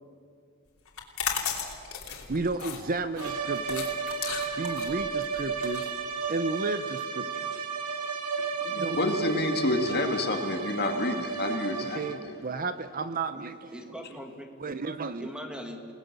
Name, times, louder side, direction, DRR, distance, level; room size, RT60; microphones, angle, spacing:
sound 1, 0.9-6.6, left 7 dB, 70° left, 3.3 m, -35 dB
voice 1, 2.3-3.9 4.6-5.9 6.3-7.7 8.6-9.1 11.2-11.3 11.9-13.8 14.6-15.3, right 3 dB, 40° right, 12 dB, 0.7 m, -33 dB
sound 2, 3.2-12.4, right 5 dB, 85° right, 2.0 m, -33 dB
voice 2, 8.9-12.1, left 2 dB, 45° left, 4 dB, 2.3 m, -28 dB
voice 3, 13.7-14.5 14.9-15.9, equal, 5° right, 4 dB, 2.0 m, -41 dB
29.0 x 19.0 x 6.9 m, 2.3 s
head